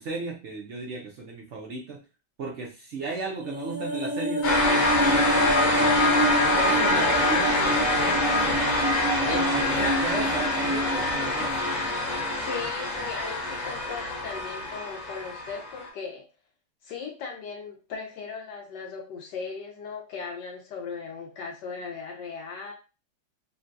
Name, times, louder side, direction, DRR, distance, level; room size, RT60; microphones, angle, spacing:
voice 1, 0.0-2.0 2.4-4.4 4.8-6.2 6.5-11.8, right 3 dB, 70° right, -1 dB, 0.6 m, -35 dB
sound 1, 3.4-11.9 12.2-12.3, equal, 40° right, 0.8 m, -28 dB
sound 2, 4.4-15.9, left 2 dB, 55° left, 1.3 m, -25 dB
voice 2, 9.3-10.0 12.3-16.2 16.8-22.7, left 5 dB, 75° left, 0 dB, 1.3 m, -37 dB
3.7 x 2.2 x 2.6 m, 0.32 s
omnidirectional pair, 1.9 m